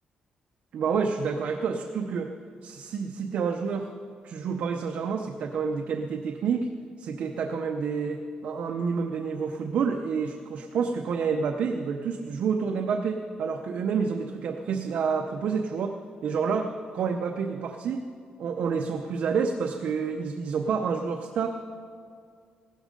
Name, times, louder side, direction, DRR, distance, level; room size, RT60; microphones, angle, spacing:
voice 1, 0.7-2.3 2.6-3.9 4.2-6.7 7.0-18.0 18.4-21.5, right 5 dB, 55° right, 4 dB, 0.7 m, -29 dB
16.0 x 12.5 x 5.2 m, 2.2 s
cardioid pair, 170°, 3 cm